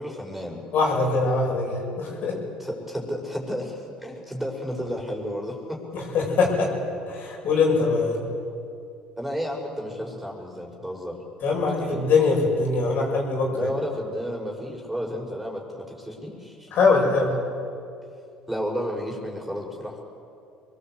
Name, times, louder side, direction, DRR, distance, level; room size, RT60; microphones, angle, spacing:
voice 1, 0.0-0.6 2.6-5.8 9.2-11.2 11.5-12.1 13.5-16.7 18.5-20.0, equal, 5° right, 0 dB, 6.2 m, -32 dB
voice 2, 0.7-2.3 5.9-6.7 7.1-8.3 11.4-13.7 16.7-17.3, left 4 dB, 60° left, -1 dB, 6.9 m, -22 dB
24.0 x 21.0 x 8.2 m, 2.6 s
hypercardioid pair, 65°, 4 cm